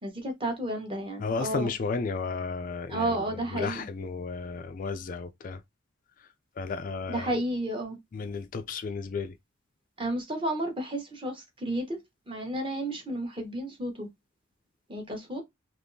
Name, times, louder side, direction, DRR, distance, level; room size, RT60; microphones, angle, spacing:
voice 1, 0.0-1.7 2.9-3.9 7.1-8.0 10.0-12.0 12.3-14.1 14.9-15.4, right 1 dB, 25° right, 1.0 m, -32 dB
voice 2, 1.2-5.6 6.6-7.4 8.1-9.3, left 4 dB, 40° left, 0.3 m, -33 dB
3.5 x 3.0 x 2.6 m
head